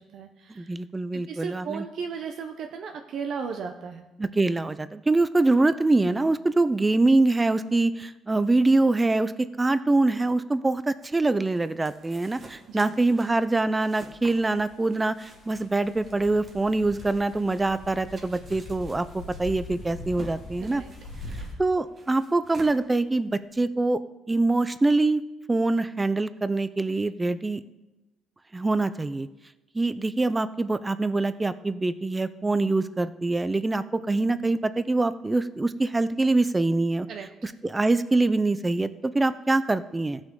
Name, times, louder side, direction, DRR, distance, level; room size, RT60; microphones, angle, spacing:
voice 1, 0.0-0.7 1.1-4.1 12.7-12.9 20.6-20.9 21.2-21.6 37.1-37.3, right 6 dB, 60° right, 4 dB, 0.6 m, -36 dB
voice 2, 0.6-1.8 4.2-20.8 21.6-24.0 24.3-25.2 25.5-27.6 28.5-29.3 29.7-37.1 37.4-40.2, right 2 dB, 15° right, 14 dB, 0.4 m, -24 dB
sound 1, 11.0-23.5, right 2 dB, 30° right, 1.4 m, -51 dB
sound 2, 14.4-14.8 15.2-21.5, left 2 dB, 80° left, 2.3 m, -42 dB
15.5 x 6.1 x 3.7 m, 1.0 s
cardioid pair, 135°, 0 cm